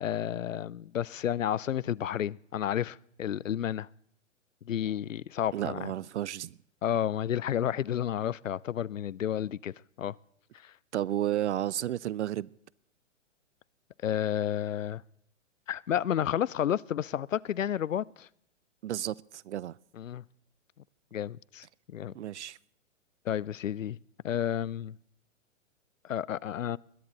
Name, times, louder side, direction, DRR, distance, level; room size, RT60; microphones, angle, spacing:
voice 1, 0.0-3.9 4.7-5.9 6.8-10.1 10.6-10.7 14.0-15.0 15.7-18.3 19.9-20.2 21.1-22.1 23.3-24.0 24.2-24.9 26.0-26.8, left 10 dB, 85° left, 0.5 m, -31 dB
voice 2, 5.5-6.6 10.9-12.5 18.8-19.7 22.1-22.6, right 12 dB, 65° right, 0.5 m, -32 dB
21.0 x 11.0 x 4.0 m
figure-of-eight pair, 115°, 38 cm